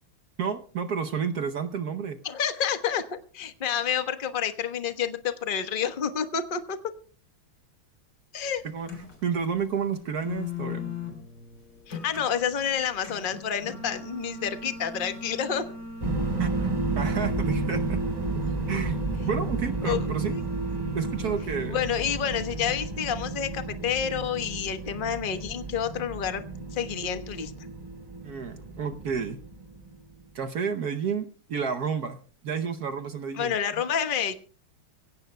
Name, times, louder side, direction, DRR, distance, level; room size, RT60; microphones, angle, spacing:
voice 1, 0.4-2.2 8.7-8.9 9.2-10.9 16.4-16.7 17.0-18.0 18.7-19.0 19.3-20.3 20.9-21.8 28.2-29.4 30.3-33.5, right 6 dB, 60° right, 8 dB, 1.2 m, -30 dB
voice 2, 2.2-6.8 8.3-8.6 11.9-15.7 19.8-20.4 21.7-26.4 26.7-27.5 33.3-34.3, left 8 dB, 35° left, 9 dB, 1.0 m, -29 dB
sound 1, 8.5-21.5, left 4 dB, 55° left, 4.3 m, -40 dB
sound 2, 16.0-30.0, right 2 dB, 25° right, 1.0 m, -32 dB
24.5 x 16.5 x 2.2 m, 0.41 s
omnidirectional pair, 2.2 m